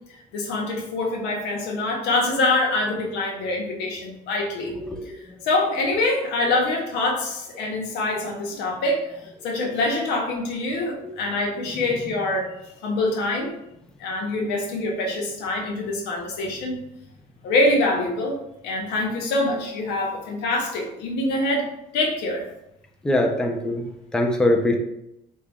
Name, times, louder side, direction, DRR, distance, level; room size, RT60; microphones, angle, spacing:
voice 1, 0.3-4.7 5.4-9.0 9.4-12.5 12.8-13.5 14.0-16.8 17.4-18.3 18.6-21.7 21.9-22.4, left 2 dB, 90° left, 0 dB, 0.9 m, -25 dB
voice 2, 23.0-23.9 24.1-24.8, left 1 dB, 5° left, 2 dB, 0.4 m, -21 dB
3.6 x 2.3 x 3.4 m, 0.84 s
cardioid pair, 110°, 17 cm